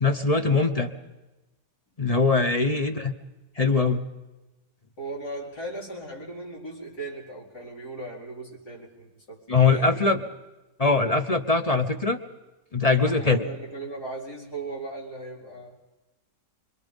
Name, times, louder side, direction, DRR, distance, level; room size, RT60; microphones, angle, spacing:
voice 1, 0.0-0.9 2.0-3.1 3.6-4.1 9.5-10.2 10.8-12.2 12.7-13.4, left 4 dB, 30° left, 8 dB, 0.8 m, -22 dB
voice 2, 5.0-10.3 12.9-15.7, right 2 dB, 65° left, -3 dB, 5.0 m, -37 dB
26.0 x 23.0 x 5.4 m, 1.0 s
omnidirectional pair, 1.8 m